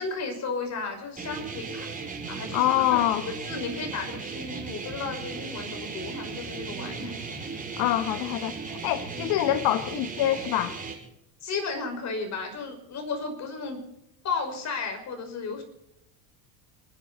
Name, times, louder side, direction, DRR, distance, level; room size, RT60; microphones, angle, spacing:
voice 1, 0.0-1.9 2.3-7.1 11.4-13.8 14.2-15.6, left 4 dB, 40° left, 5 dB, 5.5 m, -34 dB
sound 1, 1.2-10.9, right 4 dB, 20° right, 5.4 m, -36 dB
voice 2, 2.5-3.3 7.8-10.8, left 13 dB, 60° left, 11 dB, 1.2 m, -25 dB
28.0 x 10.5 x 4.2 m, 0.81 s
supercardioid pair, 105°, 41 cm